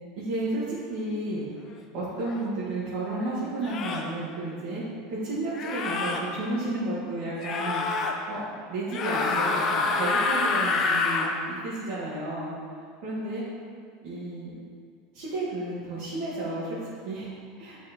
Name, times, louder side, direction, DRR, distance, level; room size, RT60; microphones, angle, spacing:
voice 1, 0.2-1.5 1.9-4.8 5.1-7.9 8.3-8.4 8.7-12.5 13.0-13.5 14.0-14.6 15.1-17.3 17.6-17.8, right 2 dB, 60° right, -10 dB, 1.6 m, -32 dB
sound 1, 2.3-2.4 3.6-4.1 5.5-6.2 7.4-8.1 8.9-11.3, left 4 dB, 40° left, 0.7 m, -27 dB
8.4 x 4.4 x 3.0 m, 2.1 s
supercardioid pair, 120°, 0 cm